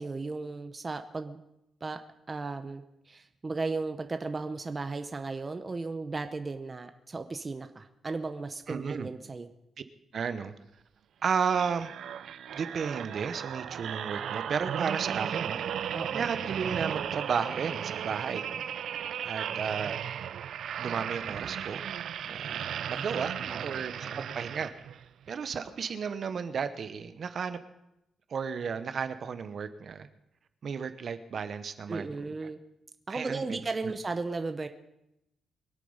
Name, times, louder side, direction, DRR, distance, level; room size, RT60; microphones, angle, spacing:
voice 1, 0.0-1.4 1.8-2.0 2.3-9.5 15.0-15.4 15.9-16.3 22.9-23.1 23.4-23.7 24.0-24.3 31.9-32.6 33.1-34.7, right 3 dB, 25° right, 8 dB, 0.7 m, -36 dB
voice 2, 8.7-9.1 10.1-10.5 11.2-11.9 12.5-15.6 16.1-18.6 19.2-20.0 20.8-21.8 22.2-23.3 23.6-24.7 25.3-27.6 28.3-30.1 30.6-32.2 33.1-33.4 33.8-33.9, right 6 dB, 50° right, 11 dB, 0.9 m, -33 dB
sound 1, 11.5-25.1 25.6-25.8, right 9 dB, 70° right, 0.5 m, -35 dB
23.0 x 8.4 x 5.5 m, 0.86 s
cardioid pair, 130°, 0 cm